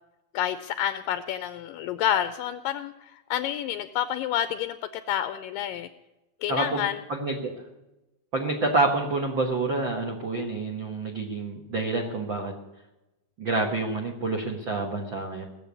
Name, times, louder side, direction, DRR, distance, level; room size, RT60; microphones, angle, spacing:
voice 1, 0.3-5.9 6.4-7.0, left 10 dB, 85° left, 10 dB, 2.0 m, -29 dB
voice 2, 6.5-7.6 8.3-12.5 13.4-15.5, right 3 dB, 85° right, 1 dB, 1.0 m, -28 dB
18.5 x 7.3 x 8.2 m, 0.99 s
omnidirectional pair, 4.5 m